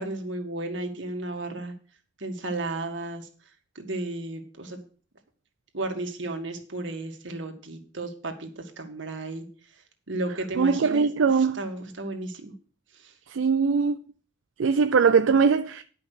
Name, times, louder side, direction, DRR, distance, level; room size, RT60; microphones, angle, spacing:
voice 1, 0.0-1.7 2.2-3.3 3.8-4.8 5.7-9.4 10.1-12.5 13.0-13.1, right 2 dB, 70° right, 1.8 m, -34 dB
voice 2, 10.6-11.6 13.3-14.0 14.6-15.8, right 5 dB, 90° right, 0.4 m, -21 dB
11.0 x 5.5 x 6.5 m
head